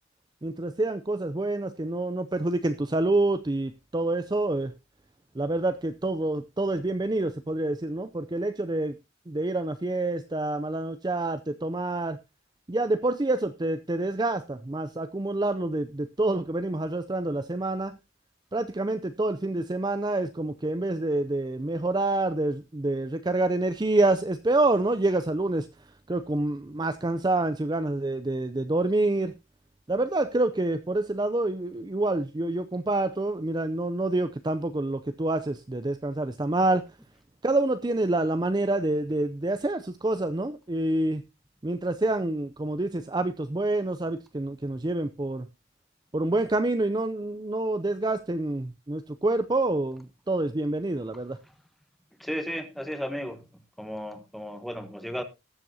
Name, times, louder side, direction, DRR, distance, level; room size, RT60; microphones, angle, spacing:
voice 1, 0.4-4.7 5.4-8.9 9.3-12.2 12.7-18.0 18.5-25.7 26.1-29.3 29.9-36.8 37.4-41.2 41.6-45.5 46.1-51.4, right 2 dB, 20° right, 0.5 m, -27 dB
voice 2, 52.2-53.4 53.8-55.2, equal, ahead, 1.1 m, -34 dB
19.0 x 7.4 x 2.8 m
head